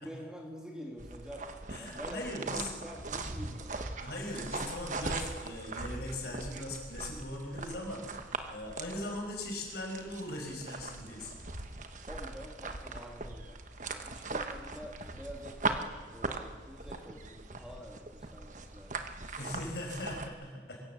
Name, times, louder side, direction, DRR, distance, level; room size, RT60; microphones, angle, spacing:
voice 1, 0.0-3.8 12.0-19.0, equal, 5° right, -1 dB, 3.0 m, -47 dB
sound 1, 1.0-20.3, right 3 dB, 40° right, 1.3 m, -40 dB
voice 2, 1.7-2.7 4.0-8.1 8.5-11.3 19.4-20.8, left 1 dB, 60° left, 1 dB, 5.7 m, -39 dB
24.5 x 16.5 x 7.3 m, 1.5 s
head